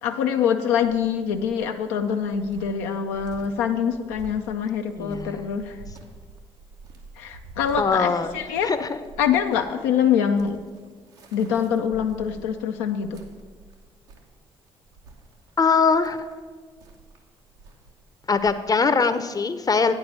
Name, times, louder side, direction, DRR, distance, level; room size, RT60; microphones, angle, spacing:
voice 1, 0.0-5.8 7.2-8.7 9.2-10.6 11.3-13.2, left 8 dB, 80° left, 5 dB, 0.4 m, -24 dB
Cricket, 0.7-18.5, right 3 dB, 85° right, 0.9 m, -48 dB
voice 2, 5.0-5.5 7.8-8.4 8.6-9.0 15.6-16.2 18.3-19.9, left 5 dB, 25° left, 11 dB, 0.6 m, -22 dB
9.3 x 4.6 x 6.7 m, 1.5 s
hypercardioid pair, 45°, 14 cm